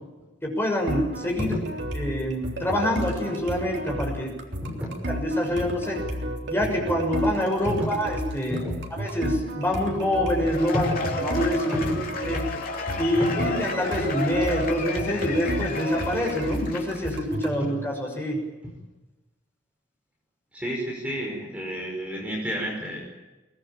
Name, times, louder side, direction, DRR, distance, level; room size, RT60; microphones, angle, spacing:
voice 1, 0.4-1.5 1.9-4.3 4.6-4.8 5.1-6.0 6.5-8.7 9.0-10.9 11.2-11.7 12.2-12.4 13.0-18.4, left 1 dB, 10° left, 0 dB, 6.6 m, -26 dB
sound 1, 0.9-17.6, right 1 dB, 60° right, 3.6 m, -32 dB
Cheering / Applause / Crowd, 10.4-17.2, left 3 dB, 50° left, 3.3 m, -32 dB
voice 2, 20.5-23.1, equal, 5° right, -1 dB, 5.5 m, -31 dB
23.0 x 20.0 x 9.0 m, 1.1 s
head